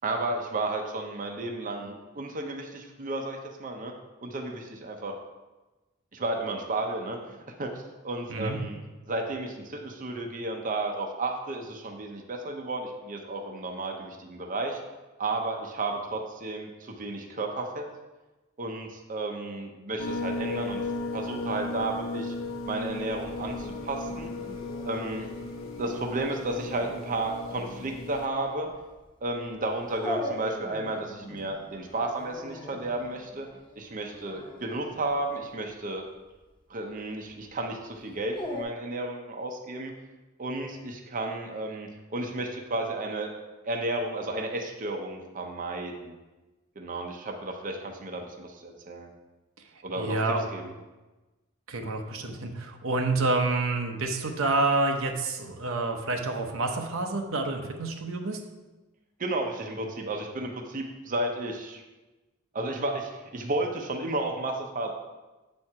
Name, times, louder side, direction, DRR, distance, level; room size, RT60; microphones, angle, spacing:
voice 1, 0.0-3.9 4.2-5.1 6.1-7.7 8.0-8.8 9.1-14.8 15.2-17.8 18.6-22.3 22.7-24.3 24.8-25.3 25.8-28.7 29.2-33.5 33.8-36.1 36.7-39.9 40.4-43.3 43.6-46.1 46.8-49.1 49.8-50.2 50.5-50.6 59.2-61.8 62.5-64.9, right 2 dB, 40° right, 2 dB, 0.7 m, -33 dB
sound 1, 20.0-28.3, left 2 dB, 80° left, 0.6 m, -35 dB
Dog, 23.1-38.6, left 1 dB, 20° left, 0.9 m, -42 dB
voice 2, 50.0-50.5 51.7-58.4, right 2 dB, 75° right, 3 dB, 0.8 m, -28 dB
7.6 x 4.4 x 4.8 m, 1.1 s
head